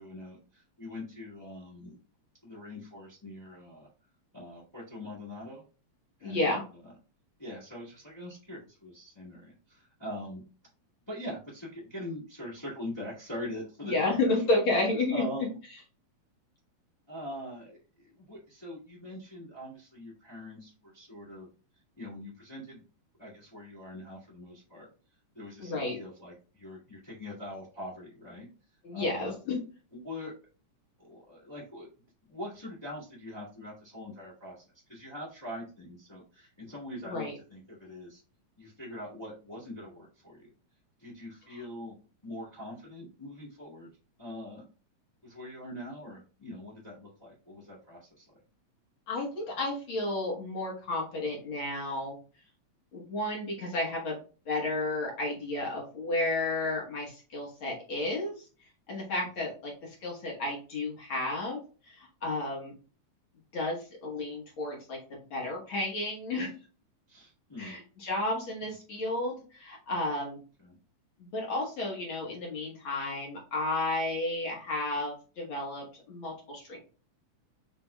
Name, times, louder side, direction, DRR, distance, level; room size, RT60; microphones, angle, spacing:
voice 1, 0.0-2.0 2.4-3.9 4.3-5.6 6.2-6.5 6.8-6.9 7.4-10.4 11.1-14.3 15.1-15.6 17.1-21.5 22.0-22.8 23.2-24.9 25.3-28.5 28.9-29.3 30.0-30.3 31.0-31.9 32.2-34.6 34.9-38.2 38.6-40.5 41.0-42.0 42.2-43.9 44.2-44.6 45.2-48.4 59.4-59.5 67.1-67.8 70.6-70.8, left 1 dB, 10° left, -8 dB, 1.4 m, -43 dB
voice 2, 6.2-6.6 13.9-15.2 25.6-26.0 28.8-29.6 37.0-37.4 41.5-41.6 49.1-52.2 52.9-54.2 54.5-58.5 58.9-61.6 61.9-62.7 63.5-66.5 67.6-70.4 71.2-76.8, left 2 dB, 55° left, -2 dB, 1.6 m, -32 dB
5.5 x 3.7 x 2.2 m, 0.36 s
omnidirectional pair, 3.3 m